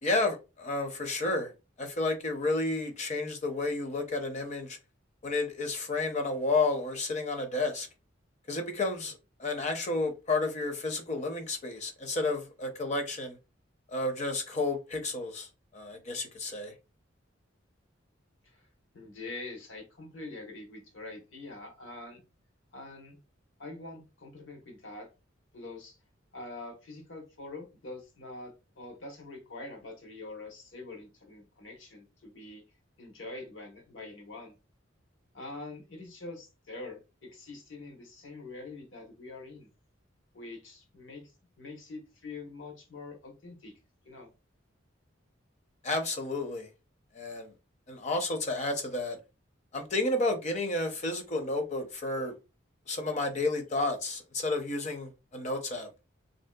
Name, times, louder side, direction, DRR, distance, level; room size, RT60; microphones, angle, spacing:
voice 1, 0.0-1.5 1.8-4.8 5.2-7.9 8.5-9.1 9.4-13.4 13.9-15.5 15.7-16.7 45.8-46.7 47.1-47.5 47.9-49.2 49.7-52.3 52.9-55.9, left 2 dB, 35° left, 0.5 m, -31 dB
voice 2, 18.9-22.2 22.7-23.2 23.6-25.1 25.5-26.0 26.3-32.6 33.0-34.5 35.3-39.7 40.3-43.8 44.0-44.3, left 2 dB, 80° left, 1.0 m, -45 dB
3.0 x 2.7 x 2.2 m
head